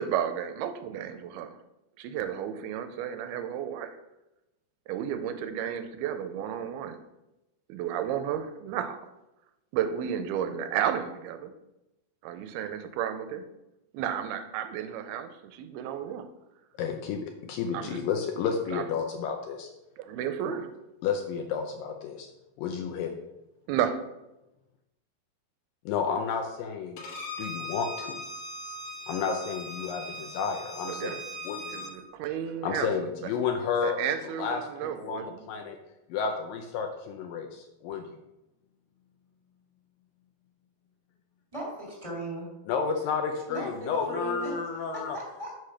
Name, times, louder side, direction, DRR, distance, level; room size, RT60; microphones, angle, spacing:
voice 1, 0.0-1.6 2.0-4.0 4.9-7.0 7.7-9.0 9.7-11.5 12.2-13.4 13.9-16.3 17.7-18.0 18.7-18.8 20.0-20.7 23.7-24.1 30.9-31.2 31.7-32.9 33.8-35.4, right 9 dB, 90° right, 9 dB, 2.5 m, -32 dB
voice 2, 16.8-19.7 20.5-20.6 21.0-22.3 22.6-23.1 25.9-27.0 27.4-28.2 29.1-31.1 31.4-32.0 32.6-34.0 34.4-34.6 35.0-35.8 36.1-38.1 42.7-45.2, left 6 dB, 80° left, 4 dB, 2.1 m, -31 dB
Bowed string instrument, 27.0-31.9, equal, 65° left, 2.3 m, -39 dB
voice 3, 41.5-42.5 43.5-44.6 44.9-45.6, right 1 dB, 15° right, -5 dB, 1.3 m, -37 dB
6.2 x 4.9 x 5.7 m, 0.94 s
omnidirectional pair, 4.5 m